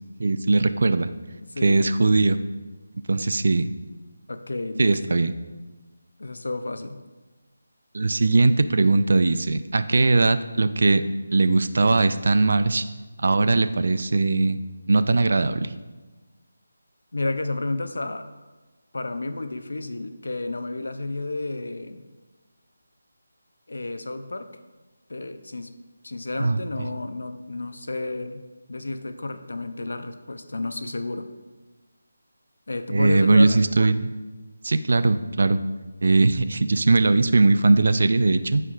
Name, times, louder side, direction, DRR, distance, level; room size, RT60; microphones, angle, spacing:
voice 1, 0.2-1.1 1.6-2.4 3.1-3.7 4.8-5.3 7.9-11.0 11.3-12.8 13.2-14.6 14.9-15.7 26.4-26.9 32.9-34.1 34.6-35.6 36.0-38.6, right 3 dB, 55° right, 12 dB, 0.3 m, -20 dB
voice 2, 1.5-1.9 4.3-5.2 6.2-7.0 17.1-18.3 18.9-22.0 23.7-24.5 25.1-25.7 26.0-28.4 28.7-31.3 32.7-33.7, left 2 dB, 80° left, 8 dB, 0.5 m, -31 dB
9.8 x 4.5 x 2.4 m, 1.2 s
figure-of-eight pair, 175°, 0 cm